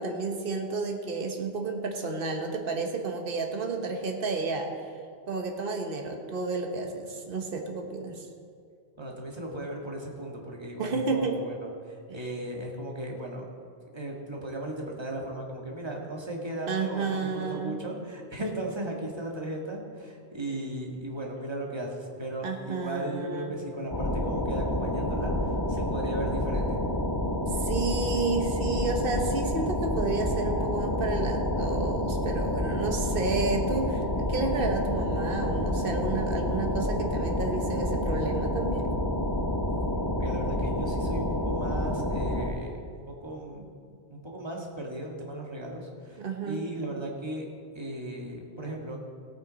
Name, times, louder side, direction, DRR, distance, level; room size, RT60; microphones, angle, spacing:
voice 1, 0.0-4.7 5.3-8.3 10.8-11.4 16.7-17.8 22.4-23.5 27.5-38.9 46.2-46.6, right 3 dB, 60° right, 3 dB, 1.3 m, -31 dB
voice 2, 9.0-13.5 13.9-26.8 40.2-47.5 47.7-49.0, right 1 dB, 25° right, -1 dB, 1.7 m, -36 dB
sound 1, 23.9-42.5, left 1 dB, 25° left, 0.8 m, -29 dB
17.5 x 8.6 x 4.0 m, 2.3 s
omnidirectional pair, 1.1 m